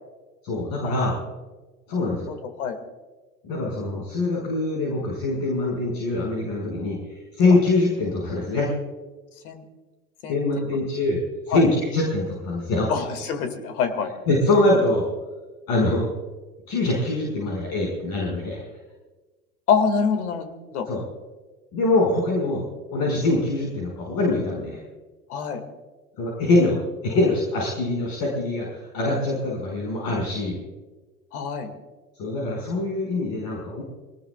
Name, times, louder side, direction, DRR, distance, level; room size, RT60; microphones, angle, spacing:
voice 1, 0.4-1.1 1.9-2.3 3.4-8.7 10.3-11.2 11.5-12.9 14.3-15.1 15.7-16.1 16.7-18.7 20.9-21.0 21.7-22.6 22.9-24.8 26.2-30.6 32.2-33.8, left 2 dB, 50° left, -3 dB, 5.9 m, -23 dB
voice 2, 2.3-2.8 9.4-9.6 10.2-10.4 11.5-11.6 12.9-14.1 19.7-20.9 25.3-25.6 31.3-31.7, left 6 dB, 75° left, 8 dB, 2.4 m, -26 dB
25.0 x 19.5 x 2.4 m, 1.2 s
hypercardioid pair, 75°, 45 cm